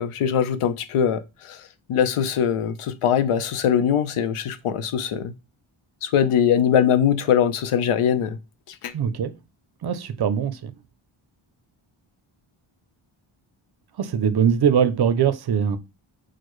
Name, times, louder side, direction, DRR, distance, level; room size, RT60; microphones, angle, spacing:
voice 1, 0.0-1.6 1.9-5.3 6.0-8.4 8.8-8.9, left 8 dB, 85° left, 0.7 m, -22 dB
voice 2, 8.9-9.3 9.8-10.7 14.0-15.8, right 8 dB, 50° right, 0.5 m, -21 dB
6.3 x 2.1 x 3.0 m
wide cardioid pair, 160°, 50 cm